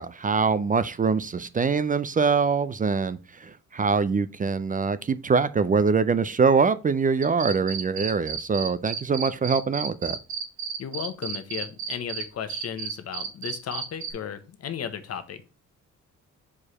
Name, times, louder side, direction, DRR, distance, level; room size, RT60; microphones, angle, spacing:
voice 1, 0.0-10.2, right 5 dB, 25° right, 0.5 m, -24 dB
sound 1, 7.2-12.2 12.5-14.1, right 7 dB, 70° right, 1.4 m, -32 dB
voice 2, 10.8-15.4, left 8 dB, 55° left, 1.0 m, -35 dB
4.8 x 4.7 x 4.2 m
cardioid pair, 90°, 30 cm